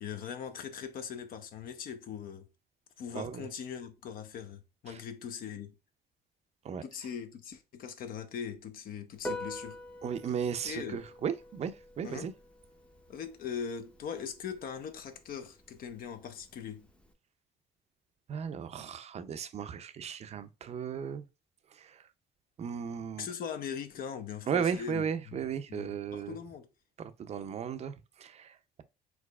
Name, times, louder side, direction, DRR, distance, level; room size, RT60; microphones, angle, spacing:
voice 1, 0.0-2.5 3.0-5.7 6.8-9.8 10.6-11.0 12.0-12.3 13.1-16.9 23.2-25.4 25.7-26.7, left 7 dB, 60° left, 0.8 m, -40 dB
voice 2, 3.1-3.5 4.9-5.0 6.6-6.8 10.0-12.3 18.3-21.3 21.7-22.0 22.6-23.3 24.5-26.4 27.0-28.8, right 7 dB, 40° right, 0.5 m, -36 dB
Piano, 9.1-17.1, left 1 dB, 5° left, 0.6 m, -46 dB
4.7 x 4.0 x 2.3 m
cardioid pair, 110°, 17 cm